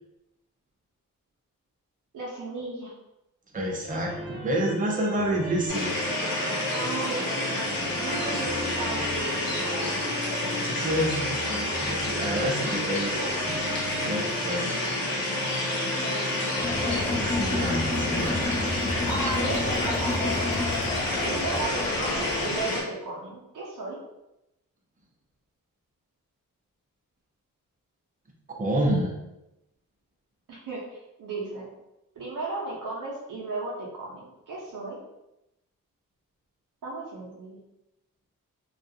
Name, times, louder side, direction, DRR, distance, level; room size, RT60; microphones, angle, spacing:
voice 1, 2.1-2.9 6.7-10.0 15.9-16.5 19.0-20.4 21.2-24.0 30.5-31.7 32.2-35.0 36.8-37.6, right 2 dB, 65° right, -5 dB, 0.8 m, -35 dB
voice 2, 3.5-5.9 10.7-13.7 14.0-14.7 17.1-18.4 28.5-29.1, right 1 dB, 25° right, -1 dB, 0.6 m, -28 dB
sound 1, 3.9-16.9, equal, ahead, 0.9 m, -37 dB
sound 2, 5.7-22.8, left 1 dB, 80° left, 0.8 m, -29 dB
Crowd, 16.5-22.8, left 2 dB, 15° left, 0.4 m, -30 dB
2.3 x 2.3 x 2.7 m, 0.89 s
cardioid pair, 60°, 34 cm